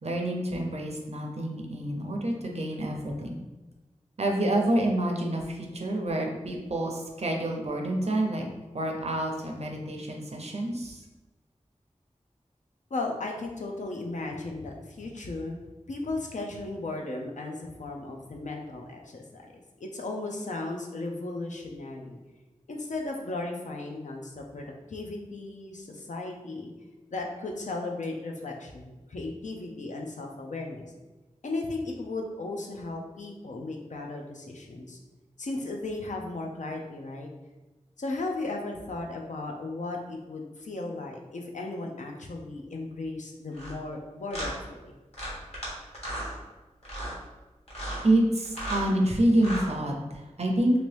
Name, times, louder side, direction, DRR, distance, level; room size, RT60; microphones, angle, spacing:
voice 1, 0.0-3.4 4.2-8.5 8.7-11.0 48.0-50.8, right 1 dB, 60° right, 1 dB, 0.6 m, -27 dB
voice 2, 12.9-15.6 15.9-19.4 19.8-22.2 22.7-26.7 27.1-30.9 31.4-35.0 35.4-37.3 38.0-44.9, left 2 dB, 75° left, 1 dB, 0.5 m, -36 dB
sound 1, 43.5-43.7 44.3-44.5 45.1-45.7 45.9-46.3 46.8-47.2 47.7-48.0 48.4-48.9 49.3-49.7, right 1 dB, 55° left, 1.2 m, -34 dB
2.9 x 2.6 x 3.3 m, 1.1 s
wide cardioid pair, 55°, 13 cm